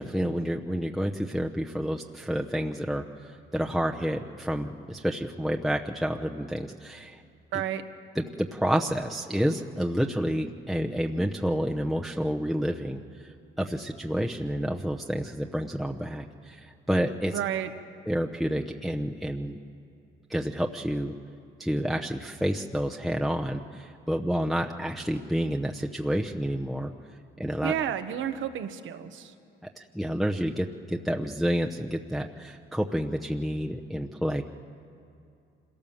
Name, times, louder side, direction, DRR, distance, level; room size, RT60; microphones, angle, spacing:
voice 1, 0.0-7.2 8.2-8.3 8.5-17.4 18.1-19.6 20.3-21.1 21.6-26.9 27.4-27.7 29.8-34.4, equal, ahead, 1 dB, 0.8 m, -29 dB
voice 2, 7.5-7.8 17.3-17.7 27.6-29.3, right 10 dB, 80° right, 9 dB, 1.2 m, -31 dB
25.5 x 17.5 x 7.3 m, 2.6 s
cardioid pair, 90°, 20 cm